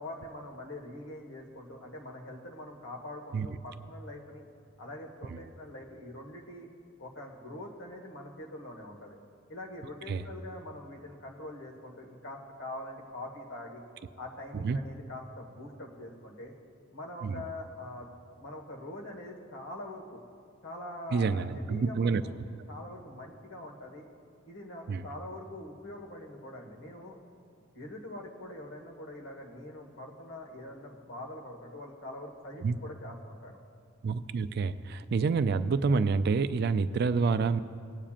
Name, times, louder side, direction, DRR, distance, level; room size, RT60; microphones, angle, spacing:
voice 1, 0.0-4.4 4.8-6.7 7.0-9.2 9.5-13.8 14.2-16.5 16.9-18.1 18.3-20.2 20.6-22.4 22.7-24.1 24.4-27.2 27.7-33.6, left 1 dB, 70° left, 0 dB, 1.5 m, -44 dB
voice 2, 21.1-22.2 24.9-25.0 32.6-32.8 34.0-37.6, right 4 dB, 55° right, 12 dB, 0.4 m, -28 dB
19.5 x 8.7 x 2.5 m, 2.4 s
head